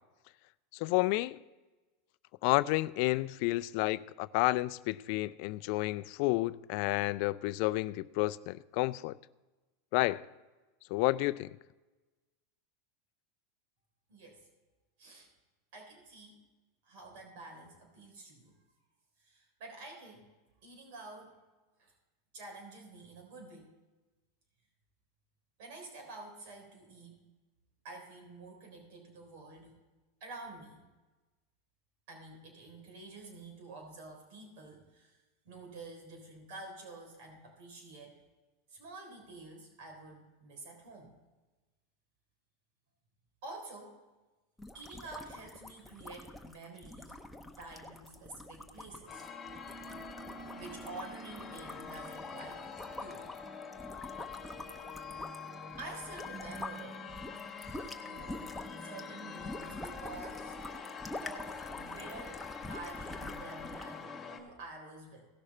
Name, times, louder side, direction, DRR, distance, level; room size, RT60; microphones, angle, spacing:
voice 1, 0.7-1.4 2.4-9.1 9.9-10.2 10.9-11.6, left 20 dB, 60° left, 0.3 m, -30 dB
voice 2, 14.1-14.4 15.0-15.3 15.7-16.4 16.8-18.5 19.2-20.3 20.6-21.4 21.8-21.9 22.3-23.7 25.6-27.2 27.8-29.8 30.2-30.8 32.1-35.2 35.4-38.2 38.7-41.1 43.4-44.0 44.7-47.2 47.6-49.2 50.5-53.3 55.8-57.0 58.0-60.6 61.2-65.3, right 2 dB, 65° right, 3.6 m, -49 dB
sound 1, 44.6-56.8 57.1-64.0, left 1 dB, 5° left, 0.9 m, -46 dB
sound 2, 49.1-64.4, left 5 dB, 20° left, 1.9 m, -45 dB
17.0 x 6.5 x 4.3 m
supercardioid pair, 125°, 0 cm